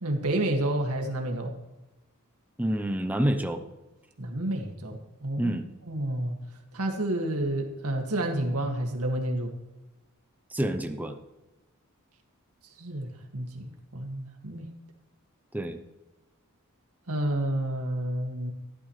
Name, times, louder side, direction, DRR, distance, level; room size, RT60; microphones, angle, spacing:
voice 1, 0.0-1.5 4.2-5.6 5.9-6.4 6.7-9.5 12.6-14.7 17.1-18.5, right 1 dB, 90° right, 2 dB, 2.1 m, -30 dB
voice 2, 2.6-3.6 5.4-5.7 10.5-11.2 15.5-15.8, right 1 dB, 5° right, 6 dB, 0.7 m, -28 dB
15.0 x 12.0 x 3.2 m, 1.0 s
head